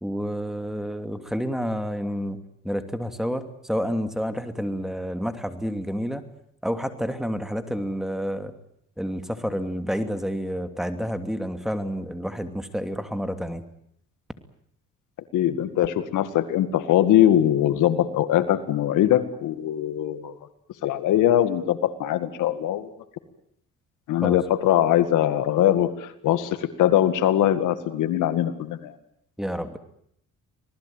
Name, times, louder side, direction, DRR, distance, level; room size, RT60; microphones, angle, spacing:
voice 1, 0.0-2.4 2.6-6.3 6.6-8.5 9.0-13.6 24.2-24.4 29.4-29.8, equal, ahead, 8 dB, 2.8 m, -29 dB
voice 2, 15.3-20.3 20.8-22.9 24.1-28.9, left 11 dB, 85° left, 11 dB, 2.0 m, -22 dB
26.5 x 19.0 x 9.1 m, 0.71 s
cardioid pair, 90°, 30 cm